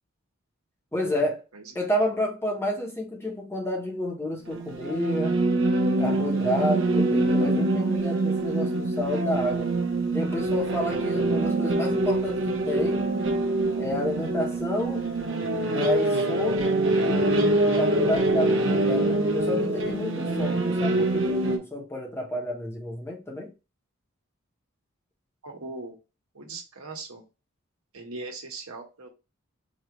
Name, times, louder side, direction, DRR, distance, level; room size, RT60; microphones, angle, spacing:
voice 1, 0.9-1.4 1.7-5.4 6.0-9.7 10.1-13.1 13.7-15.1 15.7-16.8 17.0-23.5, left 1 dB, 10° left, 1.0 m, -30 dB
sound 1, 4.5-21.6, right 2 dB, 65° right, 1.1 m, -25 dB
voice 2, 25.4-26.0 26.3-27.2 27.9-29.1, right 3 dB, 90° right, 1.4 m, -39 dB
5.0 x 2.6 x 3.0 m
head